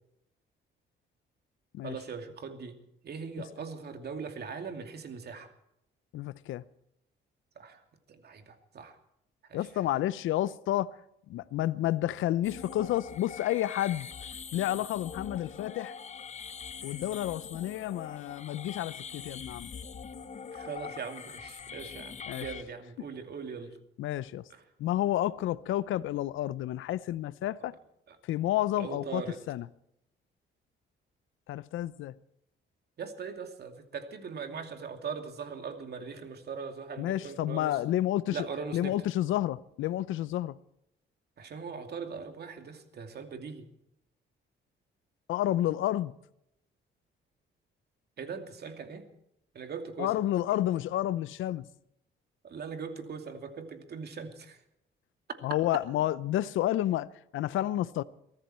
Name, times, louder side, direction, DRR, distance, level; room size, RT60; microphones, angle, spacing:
voice 1, 1.8-2.8 3.0-5.5 7.6-7.8 8.1-9.0 9.5-9.6 20.5-23.8 28.1-28.2 28.8-29.4 33.0-37.8 38.3-39.0 41.4-43.7 48.2-49.1 49.5-50.1 52.4-54.6, right 5 dB, 55° right, 2.6 m, -40 dB
voice 2, 6.1-6.6 9.5-11.0 11.3-14.1 14.5-16.0 16.8-19.7 22.3-22.5 24.0-24.5 24.8-27.7 28.2-29.7 31.5-32.1 37.0-38.5 38.7-40.6 45.3-46.2 50.0-51.7 55.4-57.1 57.3-58.0, left 13 dB, 80° left, 0.7 m, -30 dB
sound 1, 12.4-22.6, left 6 dB, 35° left, 0.9 m, -43 dB
23.0 x 14.0 x 4.4 m
cardioid pair, 90°, 20 cm